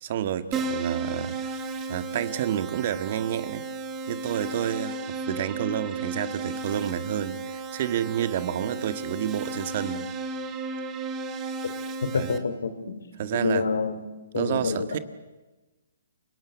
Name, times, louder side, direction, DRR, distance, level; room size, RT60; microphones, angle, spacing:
voice 1, 0.0-3.6 4.1-10.1 12.1-12.4 13.2-13.7 14.3-15.0, right 10 dB, 50° right, 11 dB, 1.5 m, -30 dB
Keyboard (musical), 0.5-12.4, right 3 dB, 20° right, 2.0 m, -34 dB
voice 2, 12.0-13.0 13.3-14.0 14.3-15.0, left 5 dB, 80° left, 12 dB, 2.8 m, -28 dB
29.0 x 19.0 x 8.4 m, 1.1 s
hypercardioid pair, 145°, 0 cm